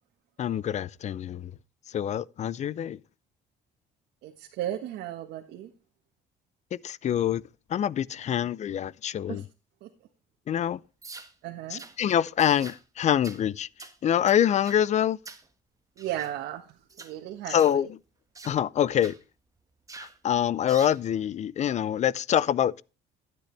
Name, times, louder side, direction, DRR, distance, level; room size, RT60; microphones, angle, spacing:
voice 1, 0.4-1.5 1.9-3.0 6.7-7.4 7.7-9.4 10.5-10.8 11.7-13.7 14.0-15.2 17.5-17.9 18.4-19.1 20.0-22.8, left 10 dB, 45° left, 0.5 m, -25 dB
voice 2, 4.2-5.7 9.3-9.4 9.8-9.9 11.4-11.8 16.0-17.9, right 12 dB, 85° right, 1.4 m, -35 dB
sound 1, 11.0-11.3 11.8-12.0 12.4-12.8 13.2-13.4 13.8-14.0 14.3-14.8 15.3-15.5 16.0-16.3 16.9-17.1 17.6-17.8 18.4-18.6 19.0-19.2 19.9-20.2 20.7-21.0, right 3 dB, 20° right, 1.5 m, -45 dB
13.0 x 9.1 x 3.3 m
cardioid pair, 110°, 17 cm